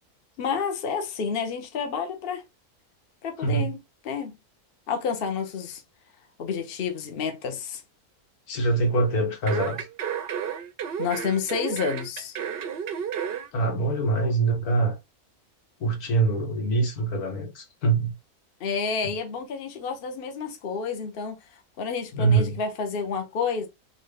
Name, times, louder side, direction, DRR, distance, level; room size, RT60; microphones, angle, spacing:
voice 1, 0.4-2.4 3.2-3.8 4.0-4.3 4.9-5.8 6.4-7.8 11.0-12.4 18.6-21.4 21.8-23.7, left 6 dB, 50° left, 0.8 m, -29 dB
voice 2, 3.4-3.7 8.5-9.8 13.5-15.0 15.8-18.1 22.1-22.6, right 3 dB, 80° left, 1.7 m, -24 dB
sound 1, 9.5-13.5 13.8-13.9, right 8 dB, 60° right, 0.6 m, -32 dB
4.1 x 2.6 x 3.2 m
omnidirectional pair, 1.6 m